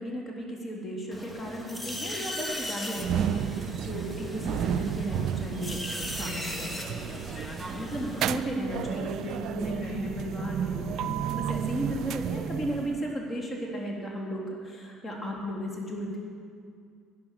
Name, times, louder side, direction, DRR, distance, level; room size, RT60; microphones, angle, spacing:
voice 1, 0.0-7.2 7.7-16.2, equal, 25° left, -1 dB, 3.4 m, -35 dB
sound 1, 1.1-8.3, equal, 10° left, 1.8 m, -38 dB
sound 2, 3.0-13.1, right 9 dB, 60° right, 0.4 m, -32 dB
12.0 x 9.9 x 6.5 m, 2.3 s
hypercardioid pair, 65°, 0 cm